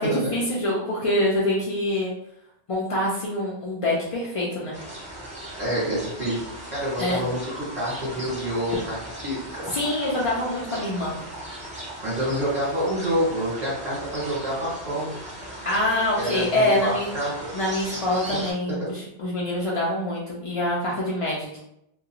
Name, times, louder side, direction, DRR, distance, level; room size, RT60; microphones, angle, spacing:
voice 1, 0.0-2.1 2.7-4.8 7.0-7.2 9.7-11.1 15.6-17.1 17.5-21.6, left 1 dB, 65° left, -5 dB, 0.3 m, -25 dB
sound 1, 4.7-18.5, right 1 dB, 10° right, 0.5 m, -38 dB
voice 2, 5.6-6.4 6.7-9.0 9.2-9.6 12.0-15.1 16.2-17.3 18.3-18.4 18.7-18.9, equal, 40° right, -7 dB, 1.1 m, -27 dB
2.4 x 2.2 x 2.8 m, 0.77 s
omnidirectional pair, 1.2 m